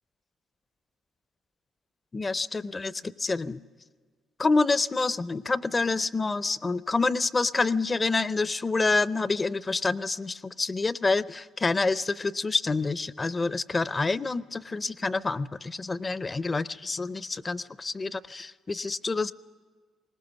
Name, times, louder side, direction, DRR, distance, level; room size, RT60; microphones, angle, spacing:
voice 1, 2.1-3.6 4.4-19.3, left 3 dB, 25° left, 17 dB, 0.5 m, -27 dB
21.0 x 18.5 x 7.1 m, 1.5 s
cardioid pair, 90°, 0 cm